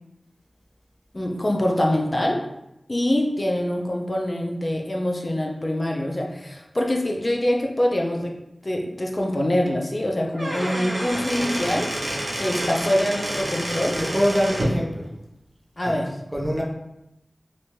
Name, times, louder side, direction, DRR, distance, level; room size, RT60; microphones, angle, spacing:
voice 1, 1.1-2.4 2.9-8.4 8.6-11.9 12.4-14.0 15.8-16.2, left 1 dB, 40° left, 1 dB, 0.4 m, -24 dB
Squeak / Wood, 10.2-14.8, right 1 dB, 80° right, 0.6 m, -28 dB
voice 2, 14.0-15.1 15.8-16.0 16.3-16.6, equal, 10° right, -2 dB, 0.5 m, -24 dB
2.5 x 2.1 x 3.1 m, 0.87 s
wide cardioid pair, 50°, 0 cm